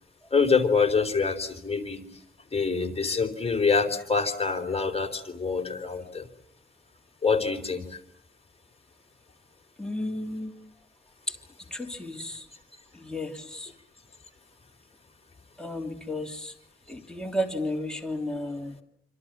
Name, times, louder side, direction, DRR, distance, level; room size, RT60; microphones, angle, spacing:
voice 1, 0.3-2.1 2.5-6.3 7.2-8.0, left 5 dB, 30° left, 4 dB, 4.0 m, -25 dB
voice 2, 9.8-10.6 11.3-11.4 11.7-12.5 12.9-13.7 15.6-16.5 16.9-18.8, left 1 dB, 5° left, 1 dB, 3.3 m, -33 dB
27.5 x 26.0 x 7.5 m, 0.71 s
wide cardioid pair, 110°, 21 cm